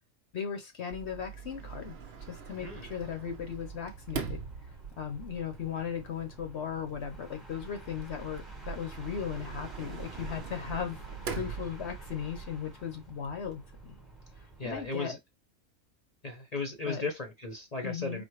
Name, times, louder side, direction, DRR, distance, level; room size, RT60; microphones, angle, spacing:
voice 1, 0.3-2.0 2.3-4.4 5.0-11.0 11.2-14.0 14.6-15.2 16.9-17.0 17.8-18.2, left 8 dB, 55° left, 1.0 m, -37 dB
Sliding door, 0.9-12.4, right 6 dB, 55° right, 0.9 m, -43 dB
sound 1, 2.5-15.1, right 3 dB, ahead, 1.0 m, -49 dB
voice 2, 14.6-15.2 16.2-18.2, left 3 dB, 35° left, 0.9 m, -36 dB
4.4 x 2.1 x 4.6 m
omnidirectional pair, 1.4 m